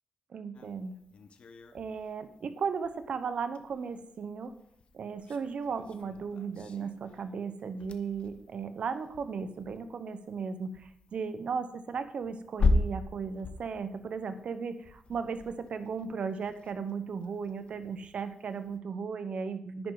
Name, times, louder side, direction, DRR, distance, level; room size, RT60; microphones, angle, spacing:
voice 1, 0.3-1.0 1.7-4.5 4.9-19.9, right 5 dB, 70° right, 11 dB, 1.0 m, -36 dB
sound 1, 0.5-18.8, left 3 dB, 60° left, 1.0 m, -38 dB
10.0 x 9.6 x 4.0 m, 0.69 s
cardioid pair, 75°, 2 cm